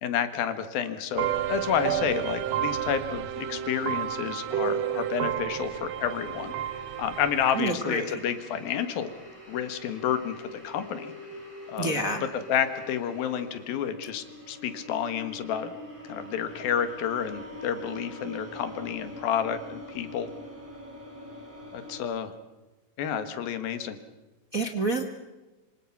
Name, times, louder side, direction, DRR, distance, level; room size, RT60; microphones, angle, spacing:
voice 1, 0.0-6.5 7.0-9.1 9.5-11.1 11.7-15.7 16.0-20.3 21.7-22.3 23.0-24.0, left 8 dB, 85° left, 10 dB, 3.4 m, -30 dB
Orchestra Music, 1.2-7.7, right 10 dB, 70° right, 1.6 m, -31 dB
sound 1, 2.4-22.0, left 1 dB, 10° right, 5.0 m, -45 dB
voice 2, 7.5-8.2 11.8-12.2 24.5-25.0, right 2 dB, 45° right, 4 dB, 1.1 m, -28 dB
26.0 x 25.5 x 6.0 m, 1.1 s
omnidirectional pair, 4.1 m